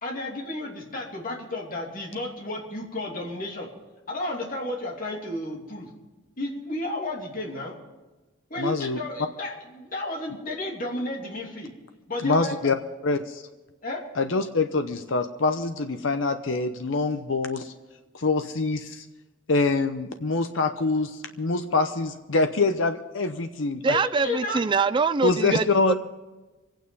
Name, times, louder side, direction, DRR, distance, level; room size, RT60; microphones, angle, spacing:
voice 1, 0.0-3.7 4.1-5.9 6.4-7.7 8.5-11.7 12.1-12.5 13.8-14.0 24.2-24.6, left 2 dB, 45° left, -2 dB, 2.9 m, -32 dB
voice 2, 8.6-9.0 12.2-12.8 13.0-13.4 14.2-17.7 18.1-19.0 19.5-24.0 25.2-25.9, left 3 dB, 85° left, 7 dB, 0.8 m, -25 dB
voice 3, 23.8-25.9, right 4 dB, 25° right, 12 dB, 0.4 m, -24 dB
25.0 x 9.1 x 5.4 m, 1.2 s
head